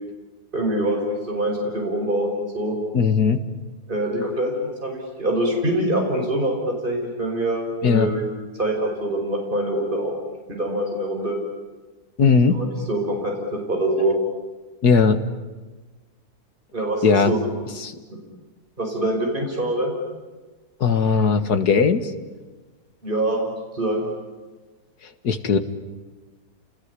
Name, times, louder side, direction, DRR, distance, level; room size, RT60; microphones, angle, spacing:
voice 1, 0.5-2.8 3.9-8.2 8.6-10.1 10.5-11.4 12.5-14.2 16.7-17.4 18.8-19.9 23.0-24.1, right 1 dB, 30° right, 0 dB, 5.7 m, -24 dB
voice 2, 2.9-3.4 7.8-8.1 12.2-12.6 14.8-15.2 17.0-17.4 17.8-18.0 20.8-22.1 25.0-25.6, left 5 dB, 85° left, 10 dB, 2.2 m, -18 dB
29.5 x 20.5 x 9.9 m, 1.3 s
omnidirectional pair, 1.7 m